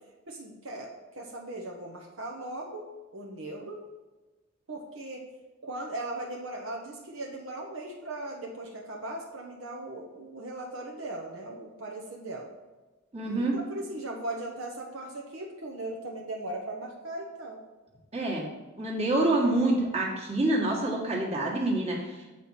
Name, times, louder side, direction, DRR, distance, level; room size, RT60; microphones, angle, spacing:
voice 1, 0.3-0.9 1.1-3.8 4.7-5.2 5.6-12.5 13.4-17.6, right 1 dB, 65° right, 0 dB, 1.0 m, -38 dB
voice 2, 13.1-13.6 18.1-18.5 18.8-22.3, right 2 dB, 30° right, -3 dB, 1.7 m, -27 dB
7.7 x 4.3 x 6.5 m, 1.2 s
head